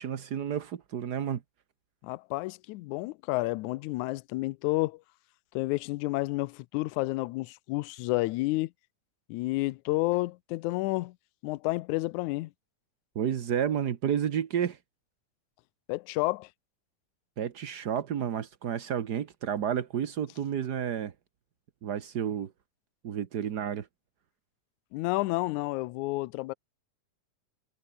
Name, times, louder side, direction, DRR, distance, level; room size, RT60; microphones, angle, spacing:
voice 1, 0.0-1.4 13.1-14.8 17.4-21.1 21.8-22.5 23.0-23.9, right 9 dB, 70° right, 0.9 m, -31 dB
voice 2, 2.0-5.0 5.5-8.7 9.3-11.1 11.4-12.5 15.9-16.5 24.9-26.5, left 21 dB, 80° left, 2.0 m, -30 dB
omnidirectional pair, 3.6 m